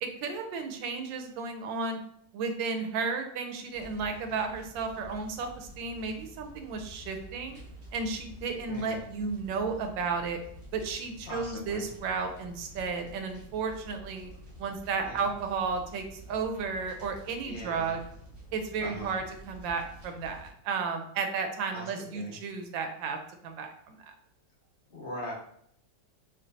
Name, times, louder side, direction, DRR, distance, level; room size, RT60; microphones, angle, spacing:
voice 1, 0.0-2.0 2.3-7.6 7.9-10.4 10.7-14.3 14.6-18.0 18.5-23.2 23.4-24.1, right 5 dB, 85° right, 5 dB, 1.3 m, -33 dB
sound 1, 3.7-20.5, equal, 30° right, 0.7 m, -49 dB
voice 2, 8.7-9.0 11.3-11.9 15.0-15.2 17.4-18.0 18.8-19.2 21.7-22.4 24.9-25.3, left 1 dB, 45° left, -3 dB, 0.6 m, -41 dB
4.4 x 3.0 x 2.6 m, 0.68 s
omnidirectional pair, 2.0 m